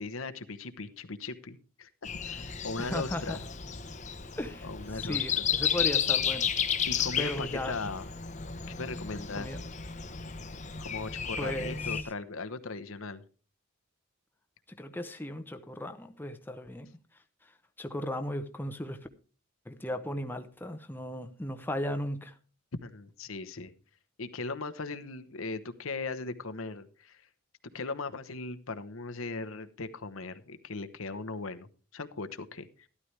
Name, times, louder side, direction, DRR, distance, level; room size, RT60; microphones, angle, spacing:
voice 1, 0.0-1.9 2.3-3.4 4.6-5.5 6.9-8.0 8.8-9.6 10.8-13.2 22.8-23.7 24.2-27.2 27.7-31.7 31.9-32.7, left 3 dB, 70° left, 1.0 m, -38 dB
Breathing, 2.0-12.0, left 8 dB, 35° left, 1.0 m, -33 dB
voice 2, 2.8-3.4 4.4-4.7 4.9-6.5 7.2-7.8 9.4-9.6 11.4-11.8 14.8-16.9 17.8-19.1 19.7-22.3, left 1 dB, 10° left, 0.8 m, -36 dB
13.0 x 12.5 x 3.3 m
head